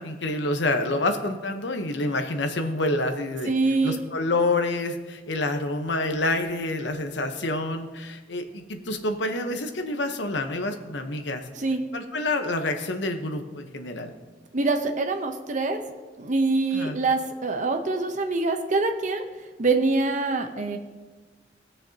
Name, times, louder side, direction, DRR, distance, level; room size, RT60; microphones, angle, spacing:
voice 1, 0.0-3.5 3.8-11.4 11.9-14.1 16.7-17.0, left 2 dB, 75° left, 6 dB, 1.0 m, -27 dB
voice 2, 3.5-4.0 11.5-11.8 14.5-15.8 16.2-19.2 19.6-20.8, right 3 dB, 45° right, 5 dB, 0.8 m, -24 dB
19.5 x 6.7 x 2.8 m, 1.3 s
head